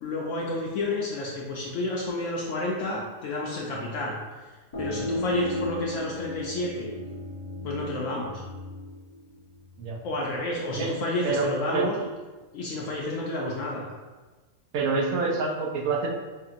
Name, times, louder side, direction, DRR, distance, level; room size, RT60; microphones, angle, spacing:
voice 1, 0.0-4.2 4.8-6.9 7.6-8.4 10.0-12.1 12.5-13.9, left 2 dB, 70° left, -3 dB, 0.9 m, -30 dB
sound 1, 4.7-10.1, left 1 dB, 40° left, 0.5 m, -34 dB
voice 2, 11.2-11.8 14.7-16.1, right 4 dB, 80° right, 0 dB, 1.0 m, -27 dB
5.0 x 2.7 x 2.4 m, 1.3 s
omnidirectional pair, 1.4 m